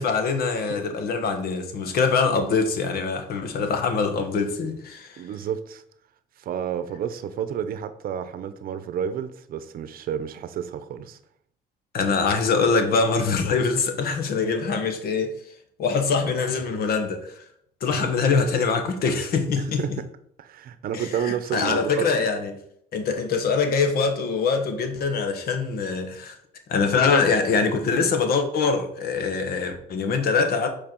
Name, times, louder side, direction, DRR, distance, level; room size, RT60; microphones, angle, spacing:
voice 1, 0.0-5.3 11.9-15.5 15.8-17.4 17.8-20.0 20.9-22.5 22.9-26.4 26.7-30.7, left 4 dB, 65° left, 1.3 m, -24 dB
voice 2, 5.2-5.8 6.4-11.2 18.0-18.1 19.6-20.1 20.4-22.2, right 8 dB, 60° right, 0.7 m, -30 dB
7.6 x 4.6 x 4.5 m
cardioid pair, 110°, 17 cm